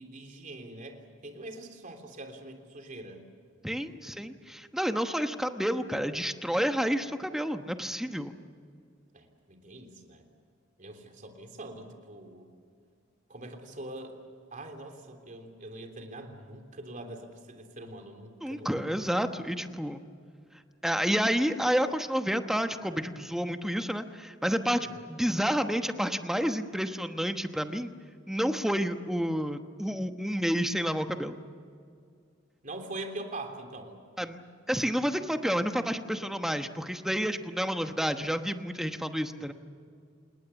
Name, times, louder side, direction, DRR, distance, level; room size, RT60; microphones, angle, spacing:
voice 1, 0.0-3.3 9.1-10.2 10.8-12.5 13.3-14.2 14.5-19.2 24.6-25.1 32.6-34.0, right 2 dB, 45° right, 5 dB, 3.4 m, -43 dB
voice 2, 3.6-8.3 18.4-20.0 20.8-27.9 28.3-31.4 34.2-34.4 34.7-39.5, equal, ahead, 7 dB, 1.1 m, -30 dB
28.0 x 20.0 x 7.1 m, 2.2 s
head